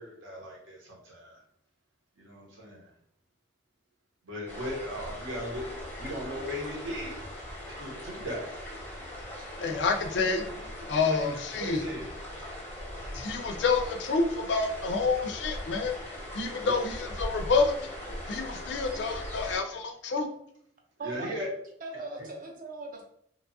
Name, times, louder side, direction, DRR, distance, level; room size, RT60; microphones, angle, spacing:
voice 1, 0.0-1.4 2.2-2.9 4.2-7.2 7.7-8.5 11.0-12.1 16.5-16.7 21.0-21.5, equal, 80° right, -2 dB, 0.9 m, -38 dB
sound 1, 4.5-19.6, equal, 10° left, 0.6 m, -40 dB
voice 2, 9.6-10.5 10.9-11.9 13.1-16.0 16.3-17.8 18.3-20.3, left 4 dB, 60° left, 5 dB, 0.4 m, -28 dB
voice 3, 21.0-21.4 21.8-23.0, right 3 dB, 45° right, 1 dB, 0.5 m, -39 dB
2.8 x 2.2 x 2.6 m, 0.70 s
head